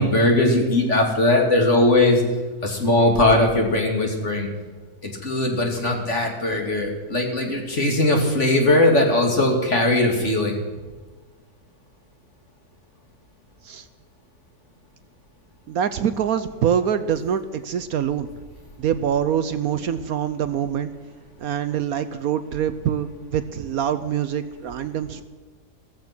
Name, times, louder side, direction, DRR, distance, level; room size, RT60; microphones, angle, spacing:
voice 1, 0.0-2.2 2.6-4.5 5.0-10.6, left 1 dB, 45° left, 2 dB, 2.9 m, -19 dB
voice 2, 15.7-18.3 18.8-20.9 21.4-25.2, right 9 dB, 65° right, 11 dB, 1.1 m, -24 dB
15.5 x 14.5 x 6.1 m, 1.3 s
omnidirectional pair, 1.8 m